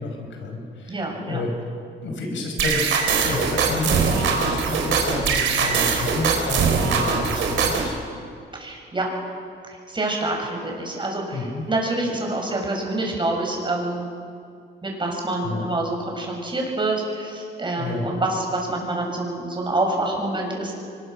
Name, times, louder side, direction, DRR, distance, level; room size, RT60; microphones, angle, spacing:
voice 1, 0.0-1.5 2.0-7.9 11.3-11.6 15.4-15.7 17.8-18.1, left 3 dB, 70° left, 2 dB, 5.7 m, -30 dB
voice 2, 0.9-1.4 8.5-9.1 9.9-14.1 14.8-20.7, right 2 dB, 25° right, 0 dB, 6.7 m, -26 dB
sound 1, 2.6-7.9, right 5 dB, 75° right, 3.9 m, -22 dB
24.0 x 21.0 x 6.5 m, 2.3 s
cardioid pair, 90°, 20 cm